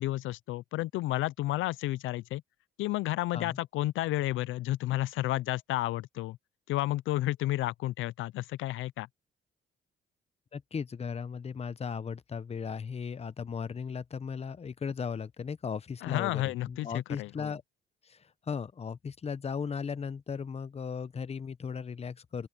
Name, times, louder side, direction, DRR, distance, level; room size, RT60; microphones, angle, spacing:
voice 1, 0.0-2.4 2.8-6.4 6.7-9.1 16.0-17.5, left 16 dB, 85° left, 0.4 m, -31 dB
voice 2, 10.5-17.6 18.0-22.5, left 6 dB, 30° left, 0.8 m, -37 dB
open air
cardioid pair, 90°, 20 cm